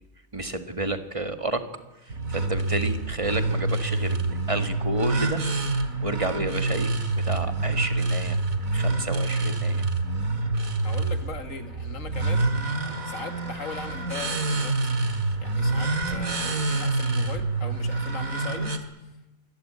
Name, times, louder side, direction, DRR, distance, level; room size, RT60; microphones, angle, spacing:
voice 1, 0.3-1.7 2.0-5.4 6.0-8.4 8.7-9.8, right 2 dB, 25° right, 8 dB, 1.8 m, -30 dB
sound 1, 2.1-18.8, right 2 dB, 75° right, 2.6 m, -27 dB
voice 2, 10.8-12.5 13.0-14.8 15.4-18.8, left 4 dB, 65° left, 8 dB, 2.3 m, -38 dB
25.5 x 20.5 x 8.7 m, 1.0 s
omnidirectional pair, 1.5 m